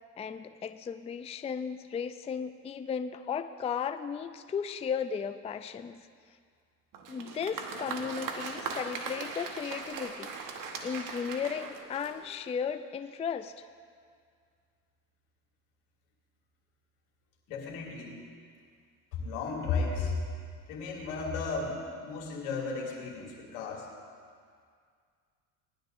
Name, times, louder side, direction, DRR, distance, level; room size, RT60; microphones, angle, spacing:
voice 1, 0.2-6.1 7.1-10.3 10.8-13.5, left 7 dB, 15° left, 10 dB, 0.4 m, -35 dB
Applause, 6.9-12.5, right 4 dB, 55° right, 1.5 m, -39 dB
voice 2, 17.5-18.2 19.1-20.2 20.7-23.9, left 4 dB, 85° left, -2 dB, 2.7 m, -34 dB
19.5 x 11.5 x 2.6 m, 2.1 s
supercardioid pair, 85°, 39 cm